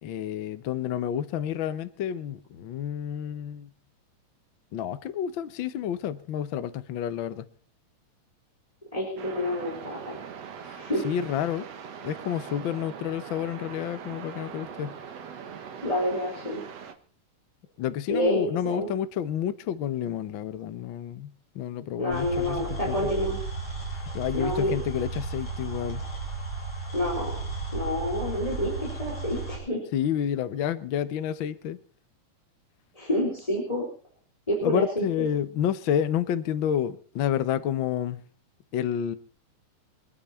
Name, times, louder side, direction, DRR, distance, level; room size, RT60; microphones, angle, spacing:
voice 1, 0.0-3.7 4.7-7.4 10.7-11.7 12.0-14.9 17.8-23.0 23.9-26.0 29.9-31.8 34.6-38.2 38.7-39.1, left 9 dB, 75° left, 1.1 m, -30 dB
voice 2, 8.9-10.2 10.8-11.0 15.8-16.6 18.1-18.9 22.0-23.4 24.3-24.7 26.9-27.3 27.7-29.8 32.9-33.9 34.5-35.1, left 1 dB, 10° left, 4.2 m, -28 dB
sound 1, 9.2-16.9, right 7 dB, 60° right, 2.4 m, -41 dB
sound 2, 22.1-29.6, right 3 dB, 40° left, 5.6 m, -34 dB
25.5 x 9.8 x 4.3 m
omnidirectional pair, 3.6 m